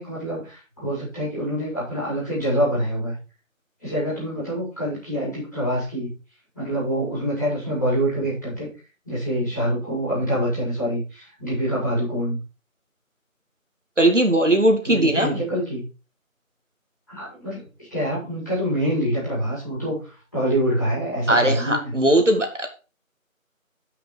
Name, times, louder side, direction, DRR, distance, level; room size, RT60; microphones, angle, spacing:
voice 1, 0.0-3.1 3.8-6.1 6.5-8.7 9.0-12.4 14.8-15.8 17.1-17.6 17.9-19.9 20.3-21.9, equal, 15° left, -9 dB, 4.9 m, -25 dB
voice 2, 14.0-15.4 21.3-22.7, right 1 dB, 60° right, 4 dB, 2.2 m, -19 dB
11.0 x 6.1 x 4.8 m, 0.32 s
figure-of-eight pair, 175°, 41 cm